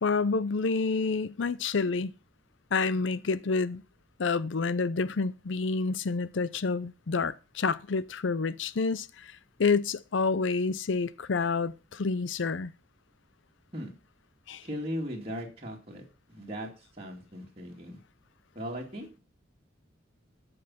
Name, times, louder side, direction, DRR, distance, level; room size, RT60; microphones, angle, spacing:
voice 1, 0.0-2.1 2.7-3.8 4.2-9.3 9.6-12.7 14.5-14.6, left 4 dB, 65° left, 0.6 m, -28 dB
voice 2, 14.6-18.0 18.5-19.2, equal, 30° right, 2.4 m, -38 dB
14.0 x 5.5 x 5.7 m
head